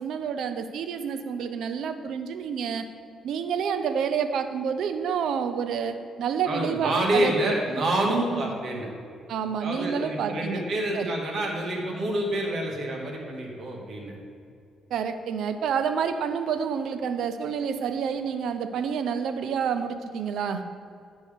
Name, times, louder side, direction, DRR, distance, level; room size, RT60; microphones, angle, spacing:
voice 1, 0.0-2.8 3.2-7.3 8.3-8.5 9.3-10.6 10.9-11.1 14.9-20.6, right 7 dB, 75° right, 9 dB, 0.6 m, -28 dB
voice 2, 6.5-8.9 9.6-14.1, right 1 dB, 60° right, -1 dB, 2.0 m, -27 dB
11.5 x 6.2 x 3.6 m, 2.3 s
cardioid pair, 90°, 0 cm